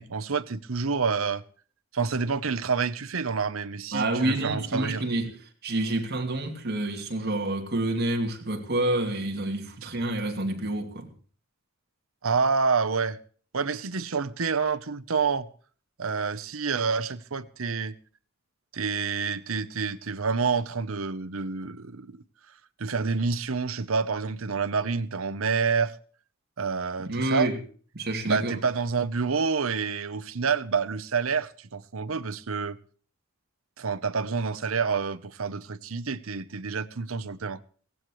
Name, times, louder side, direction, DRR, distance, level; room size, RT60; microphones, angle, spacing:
voice 1, 0.0-1.4 1.9-5.0 9.8-9.9 12.2-13.2 13.5-15.5 16.0-17.9 18.7-22.2 22.8-25.9 26.6-27.5 28.2-32.8 33.8-37.6, right 5 dB, 80° right, 0.9 m, -28 dB
voice 2, 3.9-11.1 27.1-27.6 27.9-28.6, right 1 dB, 50° right, 2.8 m, -28 dB
17.0 x 16.0 x 3.1 m
head